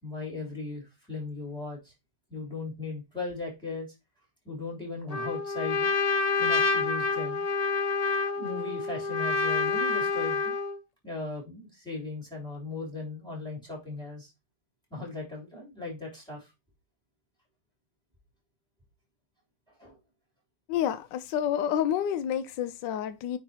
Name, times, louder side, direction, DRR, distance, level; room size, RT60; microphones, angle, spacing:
voice 1, 0.0-1.9 2.3-3.9 4.4-5.9 6.4-7.4 8.3-10.5 11.0-14.3 14.9-16.5 19.8-20.0, left 3 dB, ahead, 3.6 m, -37 dB
Trumpet, 5.1-10.8, left 4 dB, 60° left, 0.4 m, -28 dB
voice 2, 20.7-23.4, left 10 dB, 80° left, 1.3 m, -29 dB
9.4 x 3.7 x 2.9 m
omnidirectional pair, 1.9 m